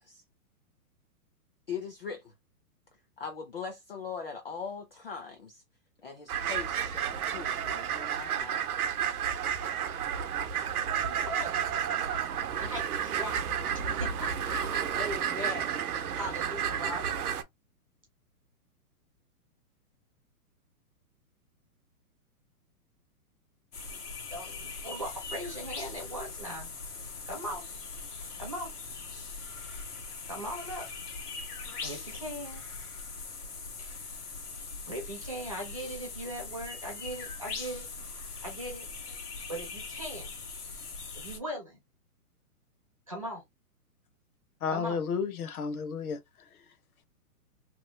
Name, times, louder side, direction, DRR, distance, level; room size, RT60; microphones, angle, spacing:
voice 1, 1.7-2.3 3.2-5.6 6.0-8.6, left 6 dB, 40° left, 0.4 m, -40 dB
sound 1, 6.3-17.4, right 8 dB, 70° right, 0.7 m, -31 dB
voice 2, 11.0-11.6 12.6-13.4 13.9-15.7 16.1-17.2 24.3-24.6 24.8-26.7 27.3-27.6 28.4-28.7 30.3-30.9 31.8-32.6 34.9-37.9 38.4-38.9 39.5-40.3 41.1-41.8 43.1-43.4 44.7-45.0, equal, 25° right, 0.5 m, -39 dB
sound 2, 23.7-41.4, left 4 dB, 90° left, 1.4 m, -41 dB
voice 3, 44.6-46.2, left 5 dB, 70° left, 0.8 m, -32 dB
3.0 x 2.1 x 3.1 m
hypercardioid pair, 180°, 45 cm